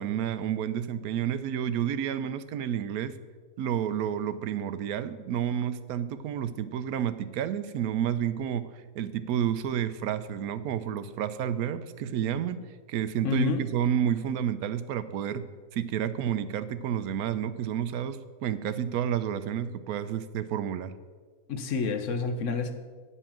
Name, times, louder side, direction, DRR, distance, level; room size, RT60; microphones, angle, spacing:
voice 1, 0.0-3.1 3.6-8.7 8.9-12.6 12.9-15.4 15.7-20.9, right 9 dB, 85° right, 13 dB, 1.1 m, -30 dB
voice 2, 13.2-13.7 21.5-22.7, left 5 dB, 60° left, 9 dB, 1.1 m, -28 dB
9.6 x 5.6 x 7.2 m, 1.5 s
omnidirectional pair, 1.5 m